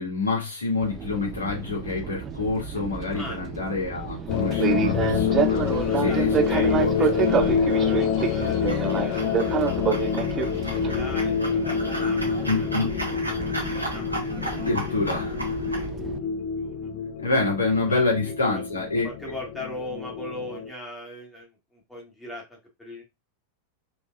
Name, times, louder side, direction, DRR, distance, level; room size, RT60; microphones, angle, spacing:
voice 1, 0.0-6.3 6.8-6.9 7.2-7.7 12.5-12.9 14.5-15.4 17.0-19.1, left 3 dB, 75° left, -1 dB, 2.1 m, -27 dB
Fixed-wing aircraft airplane, 0.8-16.2, right 8 dB, 25° right, 0.5 m, -30 dB
sound 1, 4.3-20.7, left 7 dB, 40° left, 0.6 m, -27 dB
sound 2, 5.4-15.9, right 1 dB, 90° left, 1.7 m, -37 dB
voice 2, 5.8-9.8 10.4-12.9 13.2-14.0 14.8-14.9 15.7-15.8 16.2-16.3 16.6-17.0 17.9-18.6 19.0-23.0, left 1 dB, 5° left, -3 dB, 1.7 m, -40 dB
4.3 x 3.8 x 2.5 m, 0.23 s
figure-of-eight pair, 90°, 0 cm